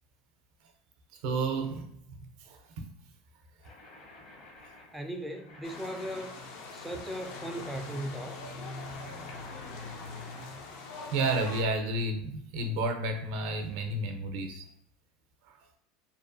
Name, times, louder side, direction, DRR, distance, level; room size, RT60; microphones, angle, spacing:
voice 1, 1.2-2.6 11.1-14.6 15.5-15.6, right 2 dB, 65° right, 5 dB, 0.5 m, -31 dB
sound 1, 3.6-10.5, left 2 dB, 50° left, 0.8 m, -52 dB
voice 2, 4.9-6.3 6.7-8.5, right 1 dB, 5° right, 3 dB, 0.3 m, -38 dB
sound 2, 5.6-11.6, left 3 dB, 65° left, 0.5 m, -42 dB
2.7 x 2.2 x 2.5 m, 0.71 s
supercardioid pair, 115°, 0 cm